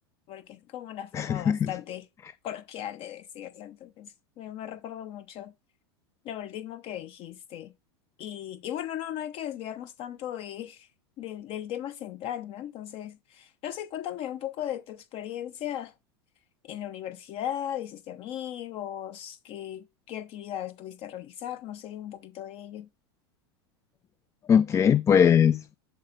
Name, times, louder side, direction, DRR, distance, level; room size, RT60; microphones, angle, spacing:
voice 1, 0.3-2.1 2.4-5.5 6.2-7.7 8.2-10.9 11.2-15.9 16.6-22.9, left 11 dB, 45° left, 0.8 m, -37 dB
voice 2, 1.1-1.7 24.5-25.8, left 8 dB, 20° left, 0.3 m, -21 dB
11.0 x 4.2 x 4.0 m
hypercardioid pair, 110°, 14 cm